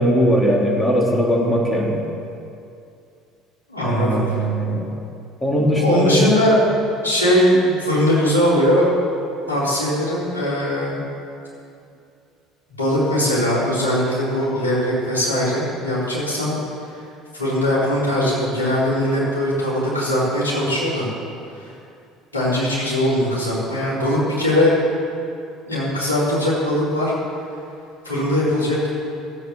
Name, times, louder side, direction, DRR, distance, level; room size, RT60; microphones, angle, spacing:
voice 1, 0.0-2.0 3.8-4.9 5.4-6.2, equal, 15° left, -2 dB, 3.3 m, -19 dB
voice 2, 3.7-4.2 5.4-6.6 7.0-8.9 9.5-11.0 12.8-16.5 17.3-21.1 22.3-24.7 25.7-27.1 28.0-28.9, left 1 dB, 90° left, -8 dB, 4.0 m, -20 dB
14.0 x 8.0 x 7.2 m, 2.5 s
figure-of-eight pair, 60°, 0 cm